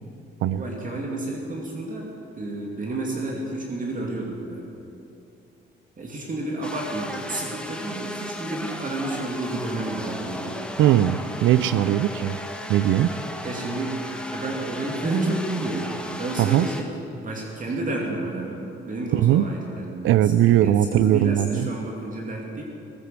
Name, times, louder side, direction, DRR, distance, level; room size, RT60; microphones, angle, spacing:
voice 1, 0.6-4.7 6.0-10.6 13.4-14.0 14.3-22.6, right 2 dB, 40° right, -1 dB, 2.5 m, -30 dB
sound 1, 6.6-16.8, left 1 dB, 5° left, 1.4 m, -35 dB
voice 2, 10.8-12.4 12.7-13.1 16.4-16.7 19.1-19.4 20.0-21.7, right 12 dB, 80° right, 15 dB, 0.5 m, -19 dB
18.0 x 9.7 x 7.7 m, 2.7 s
cardioid pair, 90°, 20 cm